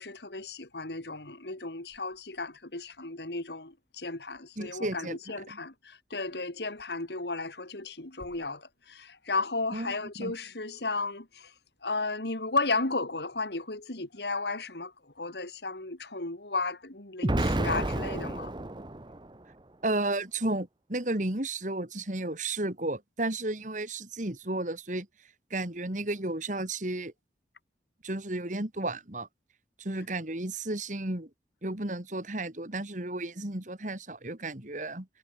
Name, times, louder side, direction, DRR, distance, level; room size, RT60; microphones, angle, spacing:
voice 1, 0.0-11.5 11.8-18.5, left 3 dB, 70° left, 2.8 m, -34 dB
voice 2, 4.6-5.2 5.5-5.6 9.7-10.3 19.8-25.1 25.5-27.1 28.0-29.3 29.8-31.3 31.6-35.1, right 2 dB, 45° right, 2.4 m, -33 dB
Explosion, 17.2-19.4, right 1 dB, 25° right, 0.9 m, -30 dB
head